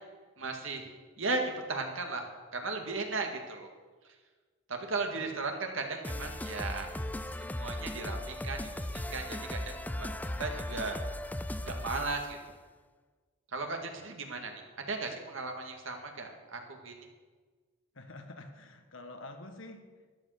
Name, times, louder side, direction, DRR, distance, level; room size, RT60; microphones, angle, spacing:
voice 1, 0.4-0.9 1.2-2.2 2.5-3.7 4.7-6.9 7.4-10.1 10.4-11.0 11.6-12.4 13.5-17.1, right 3 dB, 65° right, 4 dB, 1.9 m, -36 dB
sound 1, 6.0-12.3, left 1 dB, 10° left, 0.4 m, -37 dB
voice 2, 17.9-20.1, left 2 dB, 65° left, 6 dB, 1.4 m, -47 dB
12.5 x 11.0 x 6.5 m, 1.4 s
head